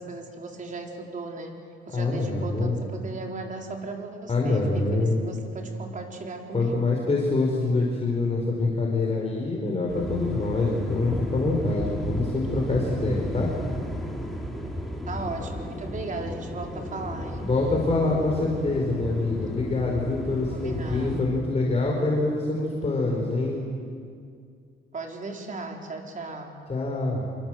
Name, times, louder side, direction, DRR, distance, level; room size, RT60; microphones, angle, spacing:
voice 1, 0.0-1.5 1.9-6.9 15.1-17.5 20.5-21.3 24.9-26.7, right 3 dB, 40° right, 2 dB, 4.6 m, -37 dB
voice 2, 1.9-2.8 4.3-5.2 6.5-13.5 17.4-23.6 26.7-27.2, left 2 dB, 30° left, -1 dB, 5.0 m, -25 dB
sound 1, 9.9-21.2, equal, ahead, 4.9 m, -34 dB
27.0 x 24.0 x 7.9 m, 2.2 s
cardioid pair, 90°, 20 cm